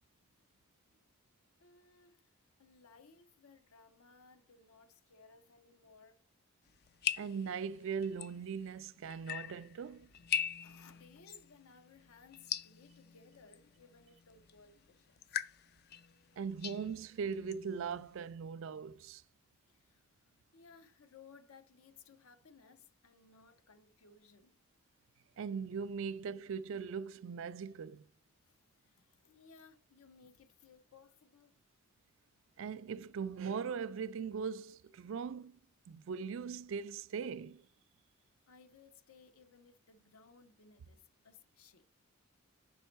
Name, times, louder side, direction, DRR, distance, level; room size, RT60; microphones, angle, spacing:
voice 1, 1.6-2.3 2.6-6.2 10.1-10.3 10.6-15.5 19.7-20.0 20.5-24.6 28.4-28.6 28.8-31.5 38.5-41.9, left 5 dB, 75° left, 0.7 m, -61 dB
sound 1, 6.7-18.3, left 9 dB, 45° left, 0.4 m, -43 dB
voice 2, 7.2-10.1 16.4-19.2 25.4-28.1 32.6-35.6 35.9-37.6, right 6 dB, 60° right, 0.3 m, -40 dB
5.5 x 5.0 x 4.5 m
head